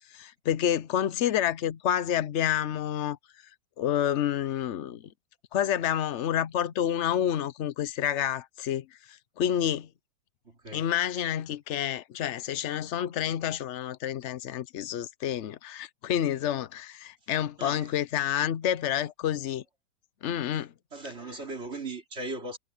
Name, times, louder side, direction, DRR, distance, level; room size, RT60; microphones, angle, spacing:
voice 1, 0.1-3.2 3.8-5.1 5.5-9.9 10.7-19.6 20.2-20.7, left 10 dB, 75° left, 0.6 m, -29 dB
voice 2, 10.4-10.9 17.6-17.9 20.9-22.6, right 2 dB, 35° right, 3.8 m, -38 dB
omnidirectional pair, 2.1 m